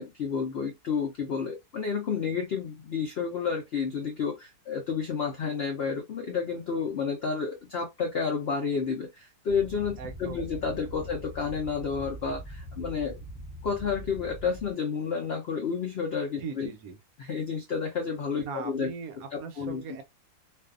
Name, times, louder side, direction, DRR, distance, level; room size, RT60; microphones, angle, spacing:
voice 1, 0.0-13.2 13.6-16.7 17.2-18.9 19.3-19.8, left 6 dB, 85° left, 0.5 m, -30 dB
sound 1, 9.5-14.7, equal, 10° left, 0.8 m, -42 dB
voice 2, 10.0-10.5 11.0-11.1 16.4-17.0 18.4-20.0, right 5 dB, 70° right, 1.0 m, -39 dB
2.6 x 2.3 x 2.4 m
omnidirectional pair, 1.7 m